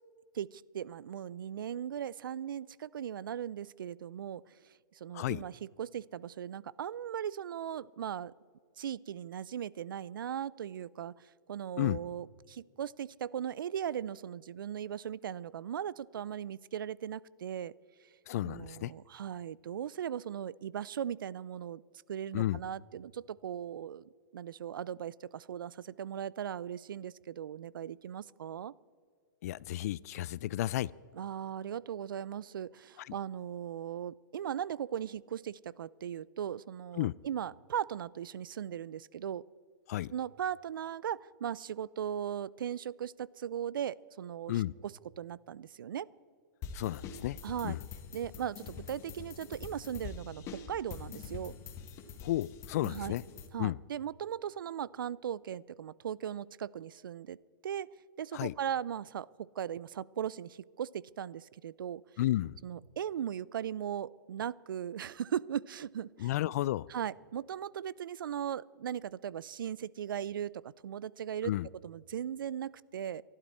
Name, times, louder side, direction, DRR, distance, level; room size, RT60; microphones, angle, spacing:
voice 1, 0.3-4.4 4.9-8.3 8.8-17.7 18.4-21.8 22.1-24.0 24.3-28.7 31.1-39.4 40.1-46.1 47.4-47.8 48.1-51.5 52.8-53.2 53.5-57.4 57.6-57.9 58.2-62.0 62.6-66.3 66.9-71.5 71.8-73.2, right 9 dB, 85° right, 23 dB, 0.4 m, -38 dB
voice 2, 18.3-18.9 22.3-22.6 29.4-30.9 33.0-33.1 37.0-37.1 39.9-40.1 44.5-44.7 46.7-47.4 47.6-47.8 52.2-53.2 53.6-53.8 58.3-58.5 62.2-62.6 66.2-66.9 71.4-71.7, left 14 dB, 50° left, 22 dB, 0.3 m, -32 dB
sound 1, 46.6-53.5, left 6 dB, 25° left, 1.3 m, -45 dB
26.0 x 11.5 x 4.2 m, 2.2 s
hypercardioid pair, 145°, 11 cm